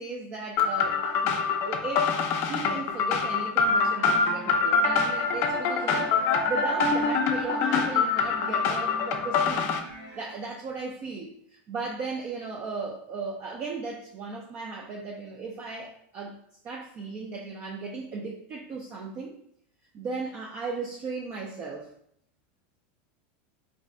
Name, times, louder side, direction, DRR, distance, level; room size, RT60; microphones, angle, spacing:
voice 1, 0.0-6.2 6.5-9.7 10.1-16.4 16.6-19.4 19.9-21.9, right 4 dB, 30° right, 0 dB, 0.3 m, -36 dB
sound 1, 0.6-9.8, left 4 dB, 40° left, 0.4 m, -25 dB
sound 2, 3.6-10.3, equal, 45° right, 0.9 m, -44 dB
2.5 x 2.1 x 3.5 m, 0.70 s
supercardioid pair, 150°, 6 cm